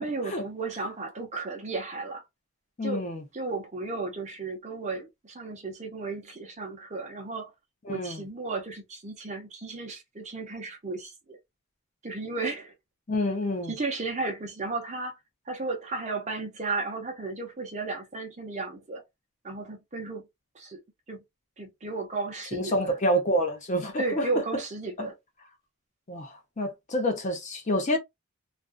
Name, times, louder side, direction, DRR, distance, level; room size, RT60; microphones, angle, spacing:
voice 1, 0.0-2.2 2.8-3.0 3.3-7.5 7.9-11.4 12.0-12.7 13.7-15.2 15.5-19.0 19.4-20.3 20.5-20.8 21.1-21.2 21.6-22.9 24.0-25.1, right 3 dB, 30° right, 0.7 m, -34 dB
voice 2, 2.8-3.2 7.9-8.2 13.1-13.7 22.5-24.4 25.0-25.1 26.1-28.0, equal, 35° left, 0.5 m, -28 dB
2.4 x 2.3 x 2.2 m
head